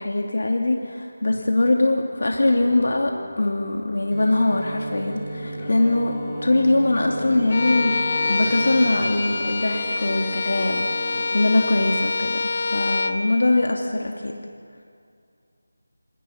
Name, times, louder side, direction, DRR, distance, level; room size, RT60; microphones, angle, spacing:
voice 1, 0.0-6.2 6.4-14.4, left 2 dB, 60° left, 2 dB, 2.5 m, -22 dB
voice 2, 1.2-1.5 5.6-5.8 11.1-11.4, left 1 dB, 80° left, 4 dB, 3.3 m, -43 dB
Singing, 2.2-12.0, left 1 dB, 25° left, 5.2 m, -37 dB
sound 1, 4.1-9.1, right 2 dB, 25° right, 5.3 m, -35 dB
Bowed string instrument, 7.5-13.2, left 3 dB, 40° left, 1.4 m, -25 dB
28.0 x 27.0 x 5.8 m, 2.3 s
figure-of-eight pair, 165°, 0 cm